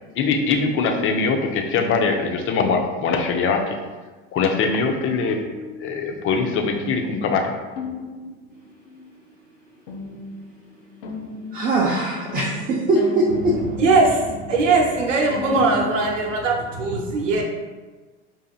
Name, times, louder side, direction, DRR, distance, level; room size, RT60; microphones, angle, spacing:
voice 1, 0.1-3.8 4.3-5.4 5.8-7.5, left 4 dB, 35° left, 4 dB, 0.6 m, -22 dB
sound 1, 5.2-6.2 7.8-9.0 9.9-15.9, left 3 dB, 70° left, 0.7 m, -35 dB
voice 2, 11.5-13.6, right 2 dB, 25° right, -5 dB, 0.6 m, -21 dB
voice 3, 13.8-17.4, right 3 dB, 80° right, 1 dB, 0.8 m, -20 dB
5.5 x 2.5 x 2.4 m, 1.3 s
hypercardioid pair, 85°, 36 cm